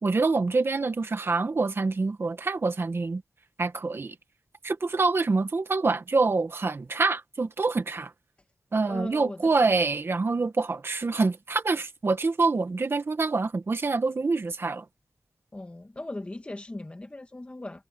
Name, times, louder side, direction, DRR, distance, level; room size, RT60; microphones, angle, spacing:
voice 1, 0.0-3.2 3.6-4.1 4.6-8.1 8.7-14.8, right 3 dB, 45° right, 1.6 m, -26 dB
voice 2, 8.9-9.8 15.5-17.9, left 2 dB, 25° left, 2.1 m, -39 dB
wide cardioid pair, 100°, 5 cm